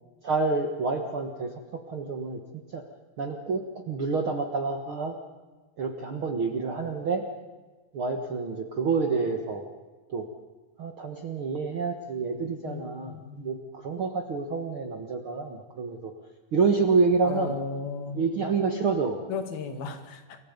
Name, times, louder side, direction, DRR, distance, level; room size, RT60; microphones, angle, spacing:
voice 1, 0.2-1.5 1.9-2.4 2.7-2.9 3.2-5.1 5.8-7.2 7.9-9.6 10.1-10.3 10.8-16.1 16.5-17.6 18.1-19.2, right 4 dB, 55° right, 5 dB, 1.6 m, -28 dB
voice 2, 12.6-13.5 17.2-18.3 19.3-20.4, left 5 dB, 70° left, 8 dB, 3.6 m, -35 dB
29.0 x 23.5 x 5.3 m, 1.3 s
omnidirectional pair, 4.5 m